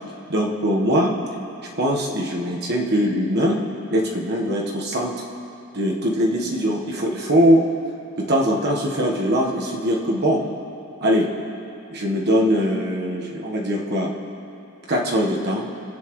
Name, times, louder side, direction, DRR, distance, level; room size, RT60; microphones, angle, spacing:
voice 1, 0.3-1.1 1.8-3.6 3.9-5.1 5.7-7.6 8.2-10.4 11.0-11.3 11.9-14.1 14.9-15.7, equal, 50° right, -1 dB, 1.3 m, -21 dB
25.0 x 8.3 x 3.1 m, 2.7 s
head